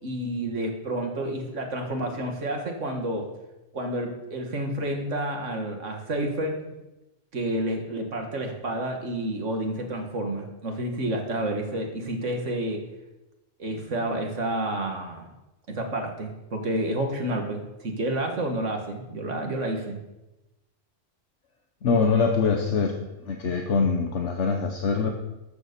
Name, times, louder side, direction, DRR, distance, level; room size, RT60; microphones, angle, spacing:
voice 1, 0.0-3.3 3.7-6.6 7.3-12.8 13.6-15.3 15.7-20.0, right 1 dB, 75° right, 3 dB, 2.1 m, -30 dB
voice 2, 21.8-23.0 23.2-25.1, left 5 dB, 70° left, 3 dB, 1.3 m, -23 dB
13.0 x 6.9 x 6.8 m, 0.99 s
omnidirectional pair, 1.3 m